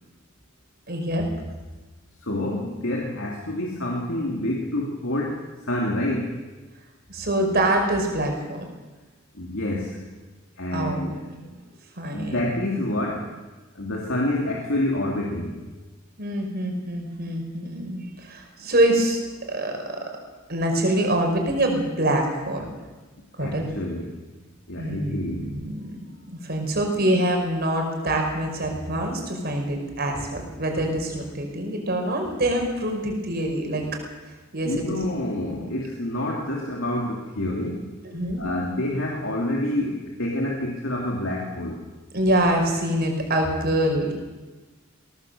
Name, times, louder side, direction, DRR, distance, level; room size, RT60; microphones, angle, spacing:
voice 1, 0.9-1.3 7.1-8.6 10.7-11.0 12.0-12.4 16.2-19.2 19.5-20.1 20.5-22.7 23.4-23.7 24.8-26.0 26.4-33.9 34.5-34.8 35.5-35.6 38.0-38.5 42.1-44.1, right 1 dB, 50° right, 3 dB, 5.3 m, -25 dB
voice 2, 2.2-6.4 9.3-10.1 10.6-11.3 12.1-13.3 13.7-15.6 23.4-24.2 24.7-25.6 34.6-37.9 38.4-41.8, left 1 dB, 70° left, -1 dB, 3.0 m, -28 dB
20.0 x 18.0 x 7.9 m, 1.2 s
head